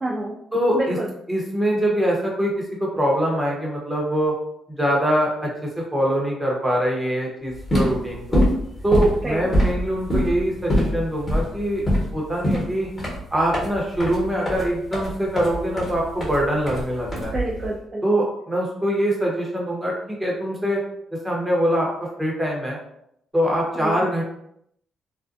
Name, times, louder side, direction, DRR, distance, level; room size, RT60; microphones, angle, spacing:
voice 1, 0.0-0.3 0.7-1.1 9.2-9.5 17.3-18.2 23.8-24.0, right 1 dB, 30° right, -3 dB, 0.4 m, -28 dB
voice 2, 0.5-1.0 1.3-2.5 2.8-4.3 4.8-8.4 8.8-11.8 12.1-12.9 13.3-17.3 18.0-20.8 21.2-21.9 22.2-22.8 23.3-24.2, equal, 10° right, -2 dB, 0.8 m, -23 dB
sound 1, 7.5-17.7, equal, 30° left, 1.2 m, -24 dB
2.5 x 2.1 x 2.5 m, 0.74 s
cardioid pair, 90°, 0 cm